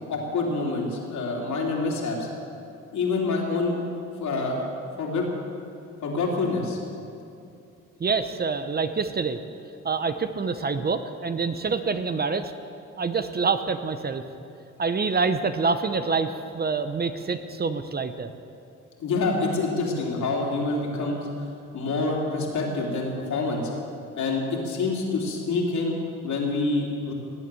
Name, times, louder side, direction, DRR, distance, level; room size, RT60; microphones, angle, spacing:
voice 1, 0.1-2.3 2.9-3.8 4.2-5.3 6.0-6.8 19.0-21.5 21.7-23.7 24.2-26.0 26.2-27.1, left 3 dB, 70° left, -2 dB, 3.4 m, -27 dB
voice 2, 8.0-9.4 9.8-12.5 13.0-14.2 14.8-18.3, right 4 dB, 30° right, 10 dB, 0.8 m, -26 dB
18.5 x 8.6 x 7.7 m, 2.6 s
cardioid pair, 90°, 30 cm